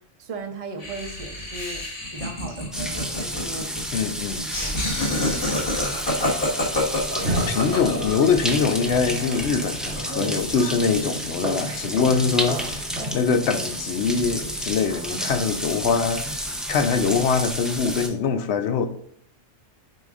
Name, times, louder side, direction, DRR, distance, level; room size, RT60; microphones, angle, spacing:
voice 1, 0.2-6.1 6.4-6.6 12.5-12.7 14.9-16.0, right 3 dB, 35° right, 0.7 m, -39 dB
Laughter, 0.8-8.4, left 1 dB, 55° left, 2.0 m, -28 dB
sound 1, 2.7-18.1, equal, ahead, 0.5 m, -31 dB
voice 2, 3.9-4.4 7.5-12.8 13.1-18.9, left 5 dB, 70° left, 0.9 m, -23 dB
sound 2, 7.1-13.1, right 1 dB, 90° right, 1.8 m, -33 dB
8.9 x 4.8 x 2.5 m
omnidirectional pair, 1.2 m